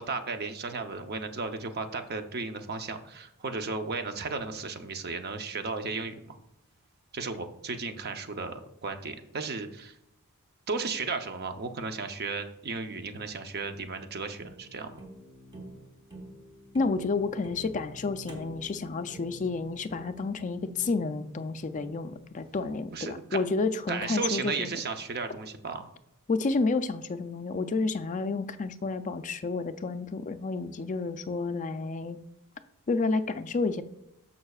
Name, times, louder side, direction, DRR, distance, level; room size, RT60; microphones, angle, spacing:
voice 1, 0.0-6.4 7.1-9.9 10.7-15.0 22.9-23.4 23.9-25.9, right 4 dB, 45° right, 7 dB, 0.7 m, -34 dB
sound 1, 13.2-24.4, right 1 dB, 20° right, 1.3 m, -50 dB
voice 2, 16.7-24.7 26.3-32.2 32.9-33.8, left 3 dB, 35° left, 10 dB, 0.4 m, -30 dB
13.0 x 5.4 x 2.4 m, 0.85 s
head